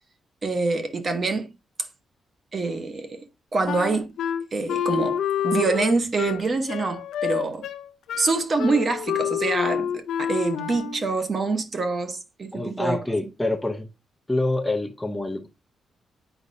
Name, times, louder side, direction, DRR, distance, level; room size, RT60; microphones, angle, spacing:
voice 1, 0.4-1.5 2.5-3.2 3.5-4.1 4.5-7.7 8.2-13.0, right 3 dB, 30° right, 0.9 m, -25 dB
Wind instrument woodwind instrument, 3.7-11.1, left 9 dB, 85° left, 0.6 m, -28 dB
voice 2, 12.5-13.9 14.3-15.5, left 2 dB, 5° left, 0.6 m, -26 dB
8.1 x 5.1 x 2.6 m
wide cardioid pair, 180°, 0 cm